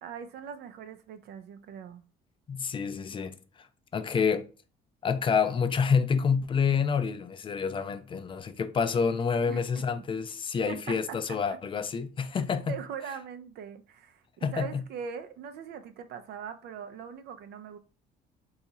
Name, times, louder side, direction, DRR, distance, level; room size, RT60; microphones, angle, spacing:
voice 1, 0.0-2.0 9.5-9.8 10.7-11.2 12.7-17.8, right 7 dB, 70° right, 0.5 m, -41 dB
voice 2, 2.5-3.4 3.9-4.5 5.0-12.8 14.4-14.8, left 6 dB, 30° left, 0.4 m, -28 dB
2.7 x 2.4 x 4.0 m
cardioid pair, 110°, 17 cm